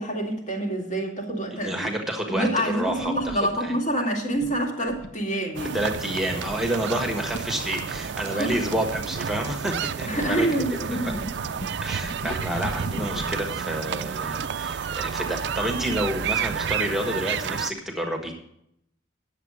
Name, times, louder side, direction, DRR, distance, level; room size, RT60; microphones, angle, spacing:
voice 1, 0.0-1.9 2.3-5.9 8.3-8.6 10.0-11.2, right 1 dB, 35° left, 1 dB, 2.0 m, -27 dB
voice 2, 1.5-3.1 3.6-3.7 5.7-10.5 10.9-11.1 11.8-18.3, right 1 dB, ahead, 2 dB, 1.4 m, -29 dB
sound 1, 2.8-3.4 4.4-5.2 5.8-6.1 6.5-6.7 7.0-7.1 7.3-7.5 7.9-9.7 10.2-13.5, equal, 80° left, 1.2 m, -38 dB
sound 2, 5.5-17.7, right 7 dB, 60° right, 0.4 m, -31 dB
10.0 x 7.3 x 6.2 m, 0.74 s
head